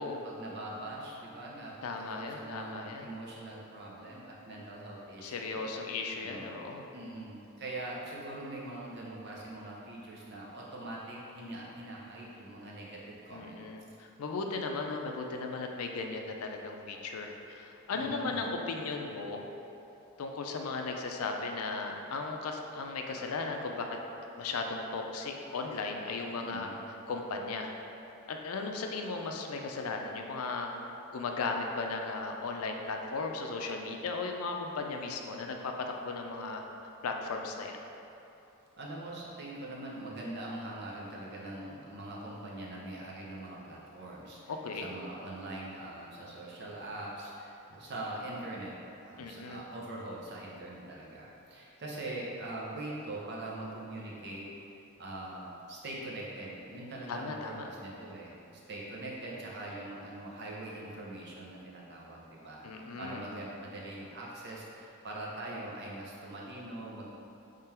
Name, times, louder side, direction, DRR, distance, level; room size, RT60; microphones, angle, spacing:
voice 1, 0.2-5.6 6.2-6.6 6.9-13.6 14.3-14.5 17.9-18.5 26.4-26.8 38.8-44.5 44.8-48.7 49.0-67.1, right 1 dB, 50° right, -4 dB, 0.8 m, -42 dB
voice 2, 1.8-3.1 5.2-6.8 13.3-19.4 20.2-23.9 24.4-26.7 27.1-27.7 28.3-30.7 31.1-36.6 37.0-37.8 44.5-44.9 49.2-49.6 57.1-57.7 62.6-63.2, left 3 dB, 90° left, 3 dB, 0.5 m, -36 dB
3.7 x 3.3 x 4.3 m, 2.9 s
head